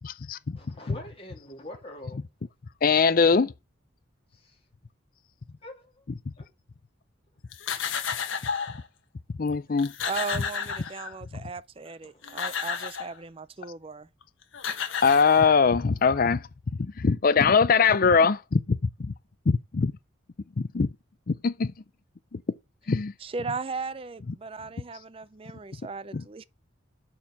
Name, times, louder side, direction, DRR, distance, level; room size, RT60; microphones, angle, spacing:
voice 1, 0.0-0.4 0.9-1.0 2.1-2.2 2.8-3.5 6.1-6.2 9.4-9.9 10.3-10.4 15.0-16.4 16.8-19.1 19.5-19.9 20.6-20.9 21.3-21.7 22.3-22.4 22.9-23.1 26.1-26.2, left 5 dB, 45° left, 0.4 m, -22 dB
voice 2, 0.5-2.2 5.6-6.0 6.4-6.5 11.3-11.4 12.0-12.3, left 1 dB, 30° left, 3.0 m, -44 dB
sound 1, 7.5-8.8 9.5-9.6 9.8-11.4 12.0-13.2 14.2-14.3 14.5-15.8, left 7 dB, 75° left, 1.4 m, -32 dB
voice 3, 10.0-14.1 23.2-26.4, right 4 dB, 25° right, 0.4 m, -37 dB
9.3 x 4.5 x 7.1 m
head